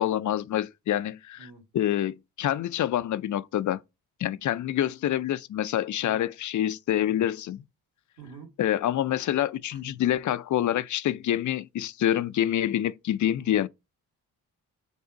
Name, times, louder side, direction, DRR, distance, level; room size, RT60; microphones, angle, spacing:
voice 1, 0.0-3.8 4.2-7.6 8.6-13.7, left 11 dB, 45° left, 0.4 m, -27 dB
voice 2, 8.2-8.5 9.7-10.0 13.2-13.6, right 4 dB, 50° right, 1.9 m, -47 dB
5.2 x 2.4 x 3.8 m
supercardioid pair, 50°, 41 cm